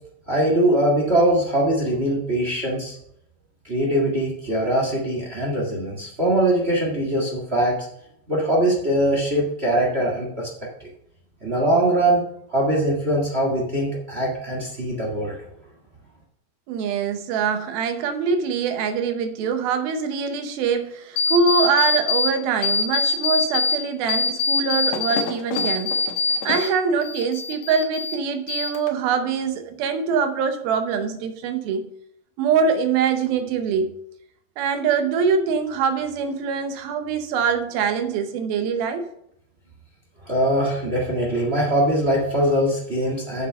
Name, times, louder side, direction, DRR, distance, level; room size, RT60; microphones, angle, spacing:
voice 1, 0.3-3.0 3.6-7.8 8.3-10.5 10.8-10.9 11.4-12.2 12.5-15.3 40.2-43.5, right 1 dB, 50° right, -2 dB, 0.7 m, -22 dB
voice 2, 16.7-26.0 26.4-31.9 32.4-33.9 34.6-39.1, right 5 dB, 75° right, 7 dB, 2.7 m, -23 dB
sound 1, 21.2-22.3 22.6-23.8 24.1-26.7 27.0-28.2 28.5-29.1, left 4 dB, 90° left, 1.3 m, -23 dB
7.7 x 7.2 x 5.4 m, 0.72 s
omnidirectional pair, 4.4 m